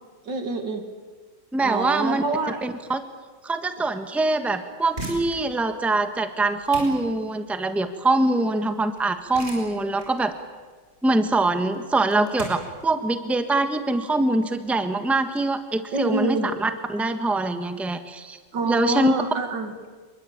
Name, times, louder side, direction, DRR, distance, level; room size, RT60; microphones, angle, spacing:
voice 1, 0.2-0.8 1.6-2.6 15.9-16.5 18.5-19.7, right 3 dB, 85° right, 6 dB, 3.0 m, -26 dB
voice 2, 1.5-2.2 2.6-3.0 3.4-10.3 11.0-18.4 18.6-19.1, right 2 dB, ahead, 8 dB, 1.3 m, -23 dB
sound 1, 4.7-15.4, right 1 dB, 35° right, 6.3 m, -41 dB
26.0 x 22.5 x 8.8 m, 1.4 s
omnidirectional pair, 1.9 m